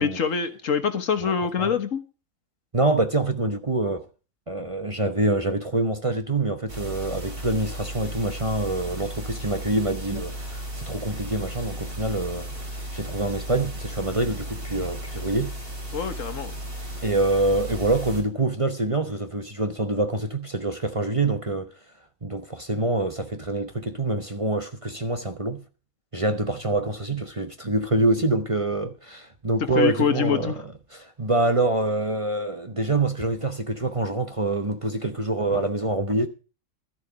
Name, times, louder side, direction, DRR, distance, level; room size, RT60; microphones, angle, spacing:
voice 1, 0.0-2.0 15.9-16.5 29.6-30.6, left 6 dB, 70° left, 1.6 m, -25 dB
voice 2, 2.7-4.0 4.5-12.5 12.9-15.5 17.0-21.7 22.2-25.6 26.1-30.5 30.9-36.3, right 2 dB, 25° right, 0.9 m, -25 dB
sound 1, 6.7-18.2, right 1 dB, 40° right, 4.3 m, -35 dB
13.0 x 11.0 x 4.9 m
omnidirectional pair, 1.4 m